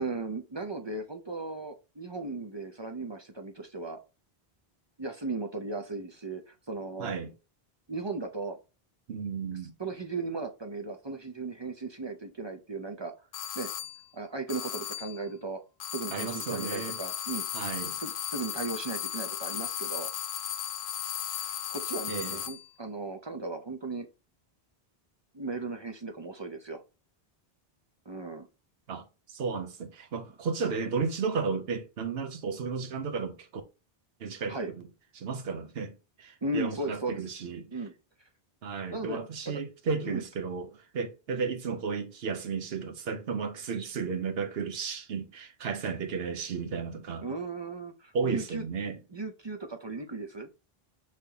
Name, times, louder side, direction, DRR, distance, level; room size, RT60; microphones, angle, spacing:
voice 1, 0.0-4.0 5.0-7.1 7.9-8.6 9.8-13.1 13.6-13.7 14.1-15.6 15.9-17.5 18.0-20.1 21.3-24.1 25.3-26.8 28.1-28.5 34.5-34.7 36.4-37.2 37.7-37.9 38.9-39.2 40.0-40.2 47.2-48.6 49.1-50.5, right 3 dB, 35° right, 0.5 m, -36 dB
voice 2, 7.0-7.3 9.1-9.7 16.1-17.0 17.5-18.0 22.1-22.4 28.9-33.6 34.2-34.9 35.1-37.8 38.6-47.3 48.1-49.0, right 5 dB, 75° right, 1.0 m, -34 dB
sound 1, 13.3-14.0 14.5-15.2 15.8-22.7, left 10 dB, 85° left, 0.8 m, -36 dB
5.3 x 3.3 x 2.8 m
omnidirectional pair, 1.0 m